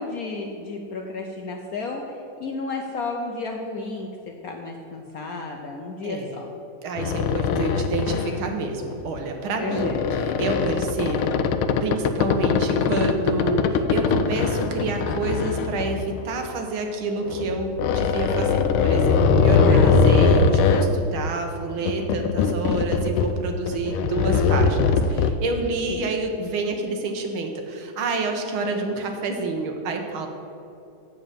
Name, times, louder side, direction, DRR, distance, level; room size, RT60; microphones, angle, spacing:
voice 1, 0.0-2.0 2.4-4.1 4.4-6.5 9.6-10.2 19.6-20.0 25.9-26.0, left 3 dB, 65° left, 2 dB, 0.9 m, -32 dB
voice 2, 6.0-6.4 6.8-11.5 11.8-30.3, right 3 dB, 80° right, 4 dB, 1.9 m, -28 dB
sound 1, 7.0-8.5 8.9-9.2 9.7-16.4 17.3-20.9 21.7-23.4 23.7-25.3, left 5 dB, 85° left, 1.5 m, -21 dB
7.6 x 7.1 x 7.5 m, 2.7 s
omnidirectional pair, 2.3 m